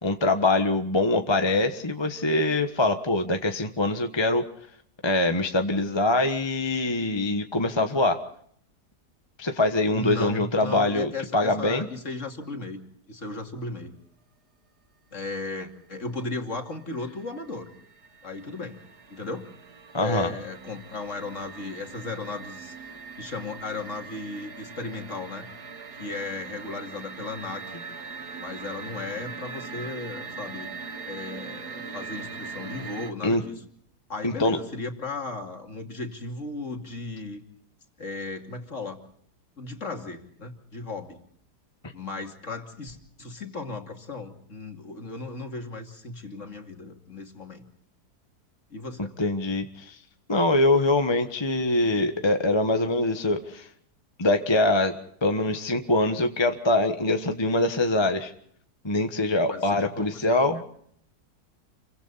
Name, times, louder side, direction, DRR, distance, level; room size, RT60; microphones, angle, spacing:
voice 1, 0.0-4.4 5.0-8.2 9.4-11.9 19.9-20.3 33.2-33.4 34.2-34.6 49.2-50.0 50.3-53.7 54.2-54.9 55.2-58.3 58.8-60.6, left 2 dB, 15° left, 6 dB, 1.3 m, -23 dB
voice 2, 9.9-12.8 13.1-13.9 15.1-17.7 18.2-18.8 19.1-19.5 20.0-22.7 23.2-25.5 25.9-27.8 28.4-30.7 31.0-33.5 34.1-37.4 38.0-39.0 39.6-41.2 41.9-47.6 48.7-49.1 59.5-60.2, left 3 dB, 45° left, 4 dB, 3.0 m, -36 dB
sound 1, 16.4-16.5 16.8-33.1, right 5 dB, 75° right, 2.2 m, -41 dB
29.0 x 24.0 x 4.2 m, 0.64 s
omnidirectional pair, 1.7 m